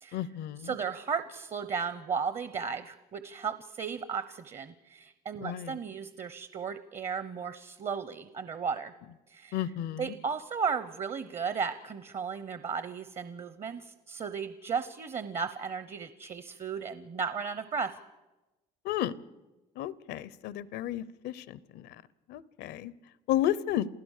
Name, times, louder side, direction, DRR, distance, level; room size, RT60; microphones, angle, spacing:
voice 1, 0.1-0.8 5.4-5.8 9.5-10.2 18.8-19.2 19.8-22.0 22.3-22.9 23.3-23.9, left 12 dB, 85° left, 20 dB, 0.8 m, -32 dB
voice 2, 0.6-8.9 9.3-9.5 10.0-17.9, right 6 dB, 40° right, 13 dB, 0.9 m, -35 dB
28.0 x 15.5 x 6.6 m, 1.1 s
cardioid pair, 110°, 17 cm